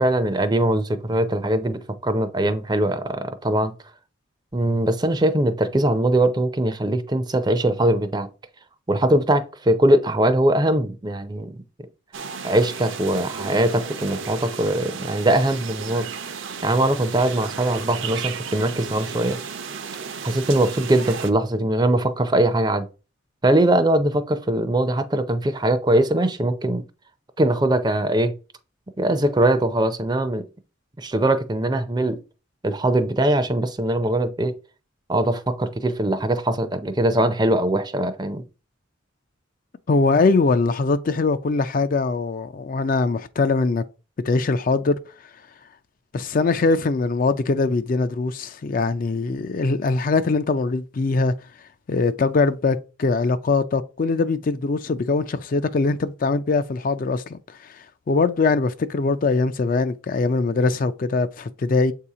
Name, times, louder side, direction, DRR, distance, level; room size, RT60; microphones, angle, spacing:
voice 1, 0.0-3.7 4.5-8.3 8.9-11.6 12.4-16.1 16.6-19.4 20.2-22.9 23.4-26.8 27.4-28.3 29.0-30.5 31.0-32.2 32.6-34.5 35.1-38.4, right 1 dB, 20° right, 0.5 m, -21 dB
sound 1, 12.1-21.3, right 6 dB, 70° right, 0.7 m, -34 dB
voice 2, 39.9-43.8 44.2-45.0 46.1-51.3 51.9-61.9, left 3 dB, 40° left, 0.3 m, -22 dB
7.5 x 2.8 x 4.8 m
head